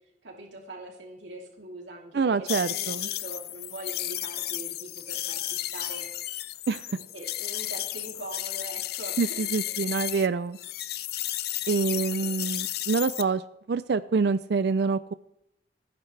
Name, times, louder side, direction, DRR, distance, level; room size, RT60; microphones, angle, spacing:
voice 1, 0.2-2.5 2.7-6.1 6.9-9.9 12.2-12.3, right 1 dB, 90° right, -1 dB, 3.1 m, -43 dB
voice 2, 2.1-3.1 6.7-6.8 9.2-10.6 11.7-13.4 13.7-15.1, right 4 dB, 65° right, 14 dB, 0.4 m, -26 dB
sound 1, 2.5-10.3 10.6-13.2, left 14 dB, 60° left, 0.6 m, -33 dB
28.5 x 10.5 x 3.3 m, 0.81 s
head